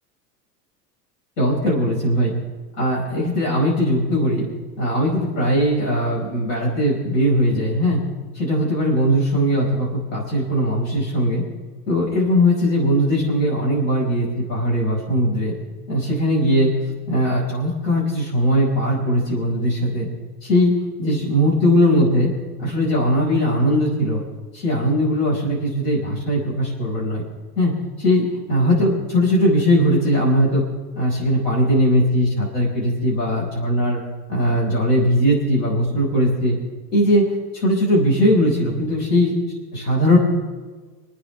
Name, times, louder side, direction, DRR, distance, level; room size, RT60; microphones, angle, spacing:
voice 1, 1.4-2.3 2.8-4.5 4.8-8.0 8.4-11.4 11.9-15.5 15.9-16.7 17.1-20.1 20.4-22.3 22.6-24.2 24.5-27.2 27.6-30.6 30.9-34.0 34.3-36.6 36.9-37.3 37.5-39.3 39.7-40.2, equal, 60° left, -4 dB, 5.5 m, -19 dB
29.0 x 9.8 x 3.4 m, 1.4 s
hypercardioid pair, 85°, 48 cm